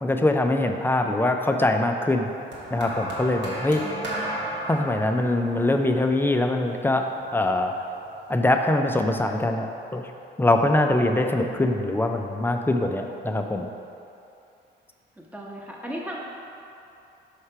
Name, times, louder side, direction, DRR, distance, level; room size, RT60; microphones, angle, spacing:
voice 1, 0.0-2.3 2.7-3.8 4.7-7.1 7.3-7.7 8.3-10.0 10.4-13.7, left 2 dB, 10° left, 4 dB, 0.4 m, -23 dB
sound 1, 2.5-6.9 7.9-8.1, right 1 dB, 60° right, 1.2 m, -34 dB
voice 2, 3.8-4.3 15.3-16.2, equal, 5° right, -3 dB, 1.0 m, -36 dB
5.7 x 3.2 x 5.5 m, 2.7 s
cardioid pair, 90°, 20 cm